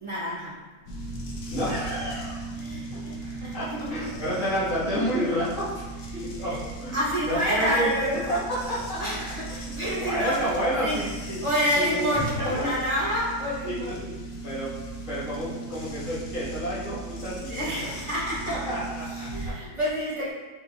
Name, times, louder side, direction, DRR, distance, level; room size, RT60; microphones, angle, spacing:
voice 1, 0.0-0.6 2.5-4.2 6.1-6.6 6.9-10.6 10.8-14.0 17.5-18.7 19.1-20.3, equal, 25° right, -8 dB, 0.7 m, -29 dB
Cosmic Interference, 0.9-19.5, right 2 dB, 80° left, 1.3 m, -38 dB
voice 2, 1.5-2.5 2.9-3.0 3.5-5.8 6.1-9.0 9.7-11.4 11.7-12.1 12.4-12.7 13.6-14.8 15.1-17.9 18.5-19.5, right 1 dB, 55° left, -9 dB, 1.8 m, -30 dB
Whoosh swoosh swish, 6.2-14.0, right 1 dB, 80° right, 1.3 m, -44 dB
4.7 x 4.2 x 2.3 m, 1.3 s
omnidirectional pair, 1.6 m